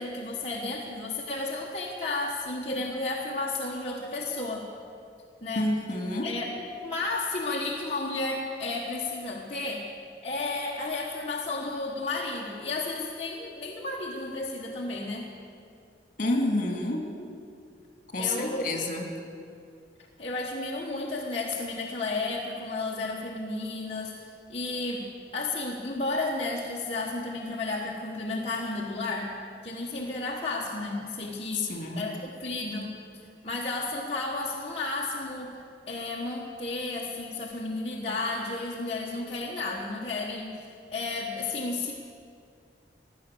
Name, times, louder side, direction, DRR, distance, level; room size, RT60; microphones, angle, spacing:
voice 1, 0.0-4.7 5.4-5.7 6.2-6.5 6.8-9.9 10.2-15.3 18.2-18.6 20.2-24.1 24.5-29.3 29.6-32.9 33.4-35.5 35.9-41.9, left 2 dB, 35° left, -4 dB, 1.3 m, -32 dB
voice 2, 5.6-6.3 16.2-17.1 18.1-19.0 31.5-32.0, left 2 dB, 50° left, 2 dB, 2.2 m, -28 dB
16.0 x 12.0 x 6.9 m, 2.4 s
head